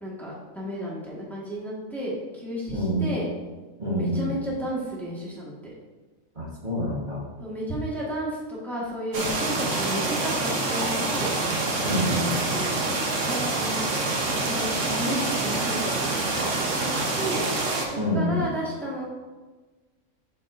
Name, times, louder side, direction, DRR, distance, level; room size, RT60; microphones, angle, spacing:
voice 1, 0.0-3.3 3.8-5.5 7.4-11.3 12.5-12.9 13.2-16.3 16.8-17.4 18.1-19.1, equal, ahead, -6 dB, 1.6 m, -33 dB
voice 2, 2.7-3.1 3.8-4.3 6.3-7.3 11.8-12.3 18.0-18.4, equal, 35° right, -6 dB, 1.6 m, -27 dB
sound 1, 9.1-17.9, right 2 dB, 65° right, 1.4 m, -26 dB
12.0 x 4.6 x 2.6 m, 1.3 s
omnidirectional pair, 1.4 m